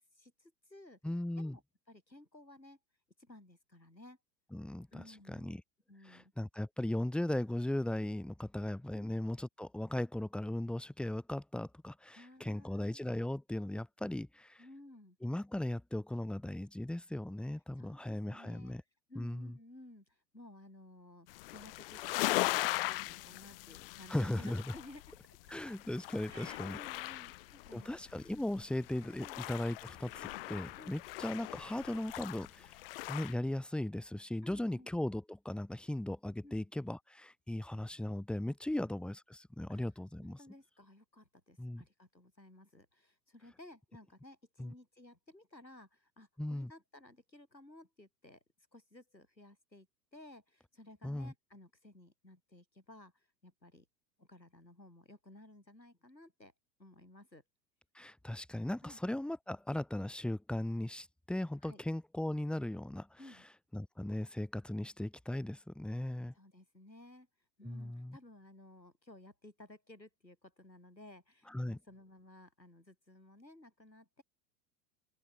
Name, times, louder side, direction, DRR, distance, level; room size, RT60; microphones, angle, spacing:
voice 1, 0.1-1.0 1.4-1.6 1.9-2.8 3.2-4.2 4.9-5.5 5.9-6.3 12.1-13.0 14.6-15.2 17.8-18.8 19.1-25.5 26.3-28.0 29.2-29.4 30.7-31.0 34.4-34.9 36.4-36.7 38.7-38.9 39.7-39.8 40.2-48.4 48.7-49.9 50.1-53.9 54.2-56.5 56.8-57.4 58.8-59.0 61.6-61.8 63.2-63.5 66.3-67.3 67.6-74.2, left 1 dB, 90° left, 5.1 m, -56 dB
voice 2, 1.0-1.6 4.5-5.6 6.1-14.6 15.2-18.8 19.1-19.5 24.1-24.6 25.5-26.8 27.7-32.8 33.1-40.4 41.6-41.8 44.6-44.7 46.4-46.7 51.0-51.3 57.9-63.2 63.7-66.3 67.6-68.2 71.5-71.8, left 1 dB, ahead, 1.3 m, -38 dB
sound 1, 21.3-33.3, left 20 dB, 35° left, 0.6 m, -39 dB
open air
figure-of-eight pair, 95°, 50 cm